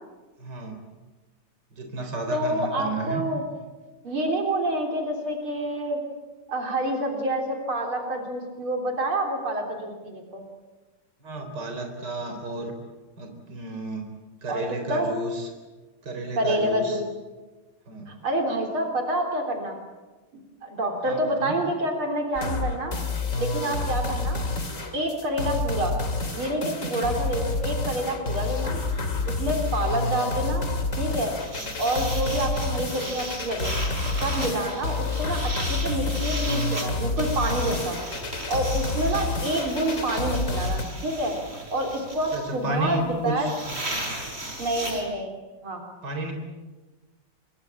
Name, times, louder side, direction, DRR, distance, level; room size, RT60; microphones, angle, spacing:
voice 1, 0.4-0.7 1.8-3.2 11.2-12.7 13.2-14.0 14.4-15.3 16.1-16.9 17.9-18.1 21.1-21.5 42.3-43.3 43.9-44.1 44.4-44.5 46.0-46.3, right 2 dB, 50° right, 5 dB, 4.5 m, -32 dB
voice 2, 2.0-3.5 4.0-6.0 6.5-10.4 14.5-15.1 16.4-17.0 18.1-19.8 20.6-23.0 23.3-24.4 24.9-26.0 26.3-28.8 29.3-30.7 31.0-31.3 31.8-33.7 34.2-38.0 38.5-43.5 44.6-45.3 45.6-45.8, right 1 dB, 75° right, 3 dB, 4.4 m, -28 dB
sound 1, 22.4-40.8, left 3 dB, 35° left, 2.9 m, -29 dB
sound 2, 31.3-45.0, right 1 dB, 30° right, 4.6 m, -36 dB
26.5 x 23.5 x 8.7 m, 1.2 s
omnidirectional pair, 2.3 m